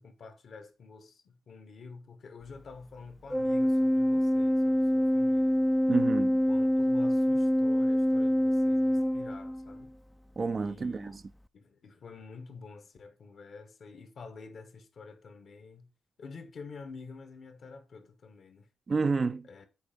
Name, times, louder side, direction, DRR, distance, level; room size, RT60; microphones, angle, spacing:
voice 1, 0.0-5.6 6.5-9.9 10.5-11.2 11.5-15.9 16.2-18.7 19.5-19.7, left 4 dB, 60° left, 1.6 m, -48 dB
Organ, 3.3-9.9, equal, 5° left, 0.5 m, -26 dB
voice 2, 5.9-6.4 10.4-11.2 18.9-19.5, right 4 dB, 45° right, 0.6 m, -29 dB
8.5 x 4.3 x 5.3 m
supercardioid pair, 45°, 0 cm